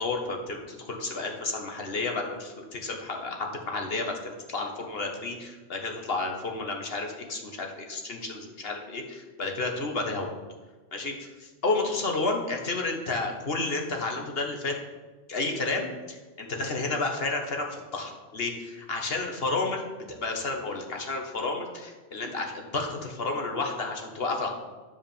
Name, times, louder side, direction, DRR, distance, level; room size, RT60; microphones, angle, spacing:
voice 1, 0.0-10.3 10.9-14.8 15.3-24.5, left 3 dB, 50° left, 2 dB, 1.7 m, -31 dB
10.5 x 5.0 x 7.2 m, 1.3 s
omnidirectional pair, 1.3 m